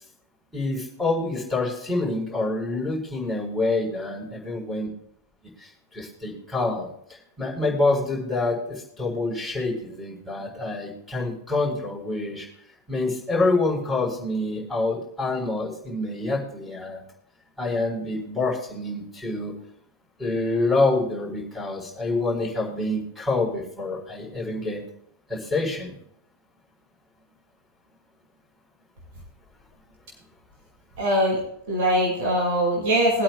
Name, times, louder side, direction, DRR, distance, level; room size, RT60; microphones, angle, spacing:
voice 1, 0.5-4.9 5.6-12.5 12.9-17.0 17.6-19.5 20.2-24.8 25.3-26.0, left 2 dB, ahead, -4 dB, 4.3 m, -27 dB
voice 2, 31.0-31.4 31.7-33.2, equal, 50° right, -2 dB, 5.6 m, -22 dB
22.5 x 8.7 x 2.3 m, 0.70 s
figure-of-eight pair, 90°, 0 cm